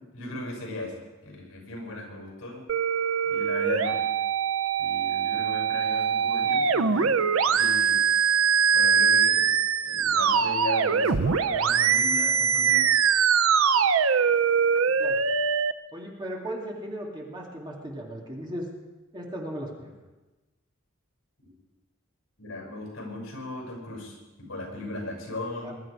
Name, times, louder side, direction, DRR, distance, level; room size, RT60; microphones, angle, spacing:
voice 1, 0.0-2.7 3.2-4.0 4.8-8.0 8.7-9.5 9.8-12.9 22.4-25.7, left 2 dB, 70° left, 1 dB, 6.4 m, -37 dB
sound 1, 2.7-15.7, right 6 dB, 75° right, 0.7 m, -23 dB
voice 2, 15.9-18.7 19.1-20.0 25.6-25.7, equal, 20° right, -1 dB, 2.4 m, -36 dB
21.5 x 12.0 x 4.9 m, 1.1 s
head